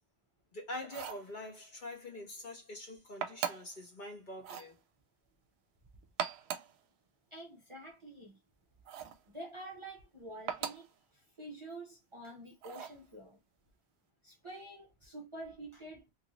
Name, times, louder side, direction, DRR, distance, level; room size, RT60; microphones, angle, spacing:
voice 1, 0.5-4.7, left 1 dB, 50° left, 1.2 m, -45 dB
sound 1, 0.8-1.3 3.2-3.8 4.4-4.7 6.0-6.8 8.9-9.2 10.5-10.9 12.6-13.0, right 8 dB, 75° right, 0.8 m, -39 dB
voice 2, 7.3-8.4 9.3-10.9 11.1-13.4 14.2-16.1, right 1 dB, 35° right, 0.6 m, -48 dB
3.0 x 2.5 x 3.0 m
omnidirectional pair, 1.1 m